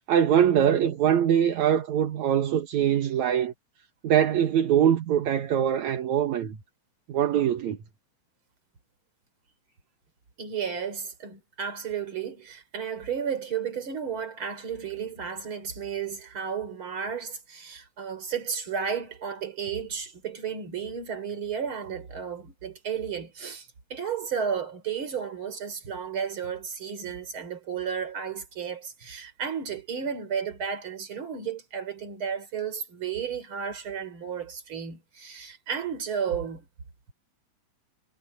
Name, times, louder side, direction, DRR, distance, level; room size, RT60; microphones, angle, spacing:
voice 1, 0.1-3.5 4.0-6.6 7.1-7.8, right 9 dB, 70° right, 2.6 m, -23 dB
voice 2, 10.4-36.6, right 7 dB, 40° right, 4.3 m, -33 dB
omnidirectional pair, 3.5 m